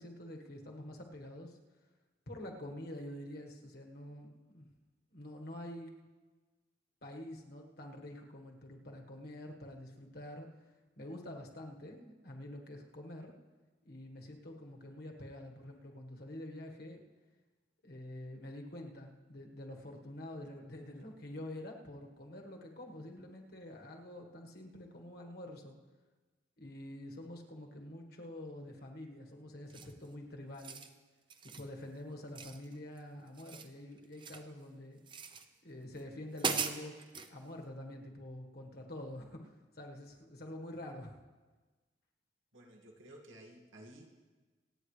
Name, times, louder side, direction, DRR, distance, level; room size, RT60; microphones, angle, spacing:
voice 1, 0.0-1.6 2.3-4.7 5.1-5.9 7.0-10.5 11.0-13.3 13.8-17.0 17.8-25.8 26.6-30.9 31.4-35.0 35.6-37.0 37.3-41.2, left 1 dB, 55° left, 1 dB, 1.5 m, -47 dB
sound 1, 29.7-30.1 30.5-30.9 31.3-31.7 32.3-33.0 33.3-34.5 35.1-35.5 36.0-36.1 36.4-37.3, right 5 dB, 25° right, 0.6 m, -39 dB
voice 2, 42.5-44.1, right 1 dB, 90° right, 0 dB, 2.1 m, -54 dB
27.0 x 9.1 x 3.3 m, 1.3 s
head